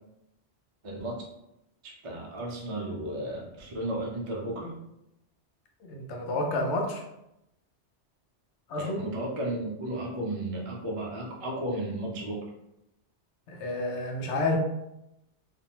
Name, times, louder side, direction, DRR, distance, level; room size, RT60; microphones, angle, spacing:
voice 1, 0.8-1.2 1.8-4.7 8.8-12.4, right 1 dB, 50° right, -2 dB, 0.4 m, -34 dB
voice 2, 5.8-7.0 8.7-9.1 13.5-14.6, left 2 dB, 80° left, 2 dB, 0.9 m, -30 dB
2.5 x 2.1 x 2.8 m, 0.85 s
omnidirectional pair, 1.2 m